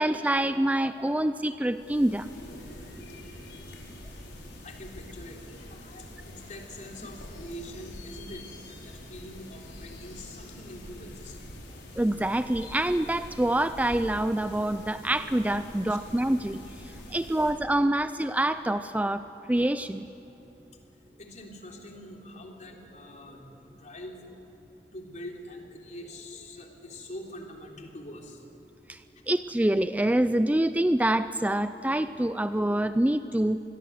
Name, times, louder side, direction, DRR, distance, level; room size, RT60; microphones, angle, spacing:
voice 1, 0.0-2.3 12.0-16.6 17.1-19.2 19.5-20.1 28.9-29.0 29.3-33.6, right 1 dB, 10° right, 11 dB, 0.4 m, -26 dB
sound 1, 1.7-17.5, left 1 dB, 90° left, 5.5 m, -45 dB
voice 2, 4.6-11.8 15.9-16.0 17.1-17.2 21.1-24.2 24.9-28.4 29.2-29.3, left 1 dB, 45° left, 1 dB, 3.6 m, -44 dB
27.0 x 21.5 x 7.9 m, 3.0 s
head